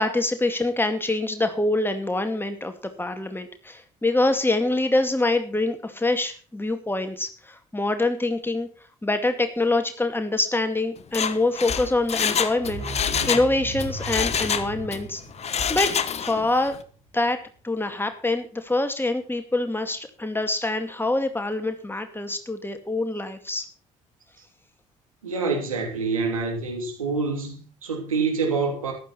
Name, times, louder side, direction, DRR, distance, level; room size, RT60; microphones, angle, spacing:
voice 1, 0.0-2.7 3.0-8.7 9.0-12.8 13.3-15.2 15.7-15.9 16.2-16.8 17.1-23.7, left 2 dB, 10° left, 2.2 m, -25 dB
Mechanisms, 11.0-13.5 13.8-15.0 15.4-16.5 16.8-16.9, left 7 dB, 40° left, 1.2 m, -26 dB
sound 1, 12.5-17.3 17.6-17.7, right 2 dB, 65° right, 4.0 m, -38 dB
voice 2, 25.2-28.9, right 4 dB, 80° right, 2.8 m, -26 dB
14.5 x 11.0 x 4.4 m
figure-of-eight pair, 45°, 17 cm